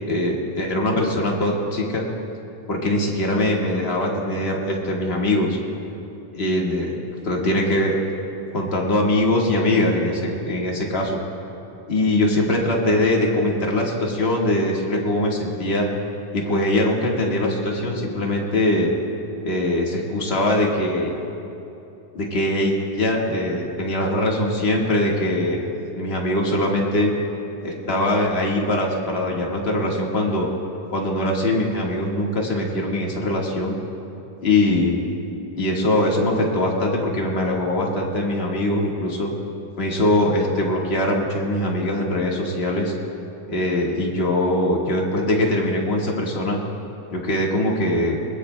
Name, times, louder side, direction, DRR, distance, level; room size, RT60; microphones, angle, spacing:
voice 1, 0.1-2.1 2.7-5.6 6.3-7.0 7.2-8.0 8.5-11.2 11.9-15.9 16.3-18.9 19.4-21.1 22.1-25.7 25.9-27.1 27.6-30.5 30.9-33.8 34.4-35.0 35.6-39.3 39.8-42.9 43.5-46.6 47.1-48.1, left 1 dB, 45° left, -2 dB, 0.7 m, -22 dB
22.0 x 20.0 x 2.2 m, 2.9 s
omnidirectional pair, 3.7 m